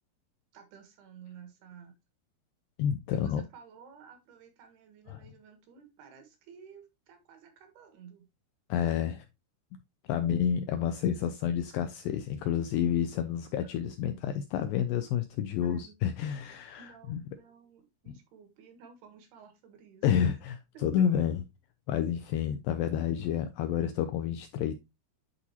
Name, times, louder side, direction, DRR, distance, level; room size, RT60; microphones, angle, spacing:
voice 1, 0.5-1.9 3.1-8.3 15.6-16.0 16.4-20.3 20.7-21.2, right 7 dB, 75° right, 3.5 m, -53 dB
voice 2, 2.8-3.4 5.1-5.2 8.7-9.3 10.1-17.2 20.0-20.6 20.8-21.4 21.9-24.7, left 9 dB, 85° left, 2.0 m, -29 dB
10.5 x 4.1 x 2.8 m
omnidirectional pair, 4.6 m